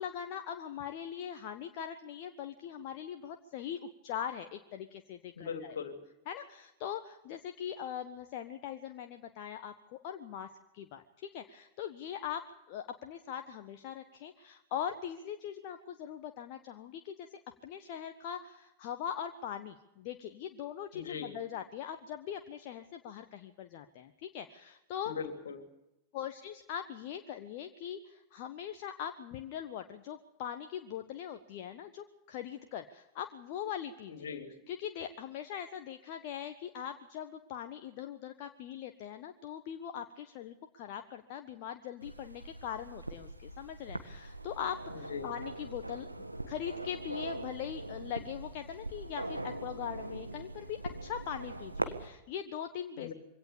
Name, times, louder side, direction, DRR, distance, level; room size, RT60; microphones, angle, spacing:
voice 1, 0.0-5.8 6.3-25.1 26.1-34.1 34.7-46.1 46.5-53.1, left 9 dB, 45° left, 6 dB, 1.3 m, -41 dB
voice 2, 5.4-6.0 20.9-21.3 25.1-25.6 34.1-34.5 44.9-45.3 53.0-53.1, left 6 dB, 70° left, 7 dB, 3.1 m, -40 dB
sound 1, 42.0-52.1, right 2 dB, 85° right, 1.6 m, -42 dB
24.0 x 17.5 x 6.9 m, 0.90 s
figure-of-eight pair, 90°, 0 cm